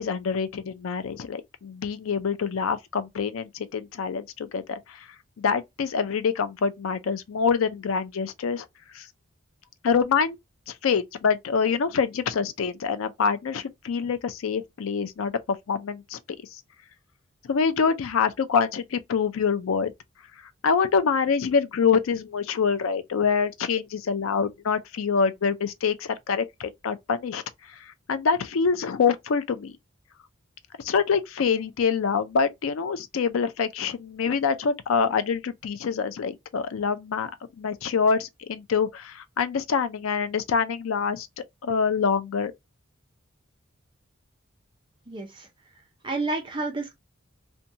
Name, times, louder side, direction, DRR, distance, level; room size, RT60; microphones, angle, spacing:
voice 1, 0.0-5.1 5.4-8.7 8.9-9.1 9.8-10.4 10.7-16.2 16.5-16.6 17.4-19.9 20.6-29.7 30.8-37.3 37.6-42.5, left 5 dB, 80° left, 0.4 m, -25 dB
voice 2, 45.1-45.5 46.0-46.9, right 2 dB, 25° right, 0.6 m, -30 dB
2.7 x 2.2 x 2.6 m
head